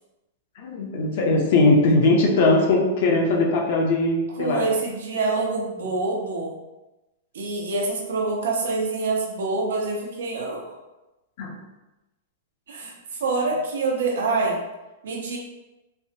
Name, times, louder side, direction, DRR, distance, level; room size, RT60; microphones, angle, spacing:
voice 1, 0.6-4.7 11.4-11.5, left 2 dB, 55° left, 0 dB, 0.6 m, -20 dB
voice 2, 4.4-6.5 7.3-10.7 12.7-14.6 15.0-15.4, right 3 dB, 90° right, -1 dB, 0.8 m, -26 dB
3.3 x 2.2 x 2.7 m, 1.0 s
supercardioid pair, 160°, 0 cm